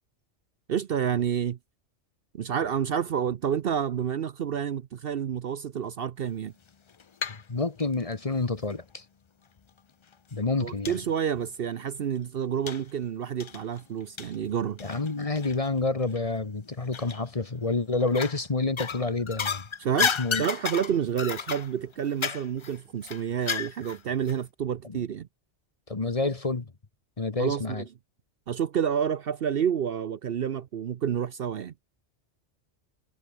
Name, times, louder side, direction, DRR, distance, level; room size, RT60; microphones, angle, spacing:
voice 1, 0.7-1.6 2.3-6.5 10.6-14.8 19.8-25.3 27.4-27.8 28.5-31.7, right 8 dB, 60° right, 0.8 m, -29 dB
sound 1, 6.7-7.4 7.8-8.8 9.6-9.7 10.1-10.2 10.9-11.0 11.4-11.5 12.7-12.9 13.4-15.7 16.0-16.2 16.9-17.5 18.0-18.4 18.8-24.0 24.3-24.4, left 6 dB, 45° left, 0.3 m, -32 dB
voice 2, 7.3-9.0 10.3-11.0 14.8-19.7 20.0-20.4 24.8-25.0 25.9-26.7 27.2-27.8, left 3 dB, 30° left, 1.3 m, -29 dB
omnidirectional pair, 1.2 m